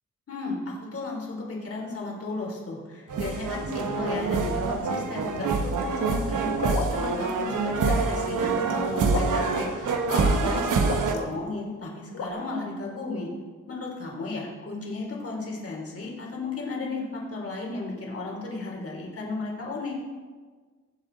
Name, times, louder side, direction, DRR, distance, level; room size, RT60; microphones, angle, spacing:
voice 1, 0.3-13.3 13.7-20.0, left 3 dB, 50° left, -1 dB, 3.8 m, -34 dB
sound 1, 3.1-11.1, right 4 dB, 80° right, 1.3 m, -26 dB
sound 2, 5.4-5.8 6.5-7.0 7.3-7.4 7.8-8.7 9.0-9.5 10.5-11.3 12.1-12.3, left 3 dB, 80° left, 1.9 m, -33 dB
22.5 x 7.7 x 4.1 m, 1.5 s
wide cardioid pair, 120°, 30 cm